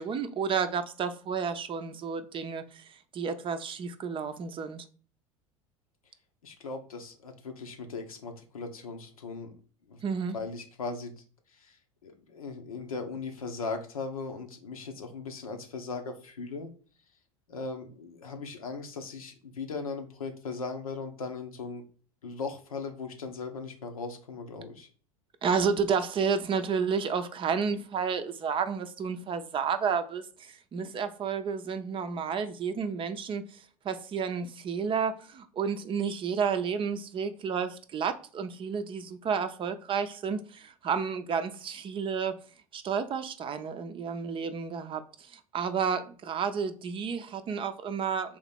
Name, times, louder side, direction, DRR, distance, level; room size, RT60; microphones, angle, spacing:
voice 1, 0.0-4.8 10.0-10.4 25.4-33.5 33.8-42.4 42.7-48.4, right 6 dB, 30° right, 0.5 m, -31 dB
voice 2, 6.4-9.5 9.9-10.0 10.3-11.1 11.5-11.8 12.0-16.7 17.5-21.8 22.2-24.9, left 4 dB, 80° left, 0.8 m, -38 dB
3.6 x 2.9 x 4.2 m
figure-of-eight pair, 80°, 18 cm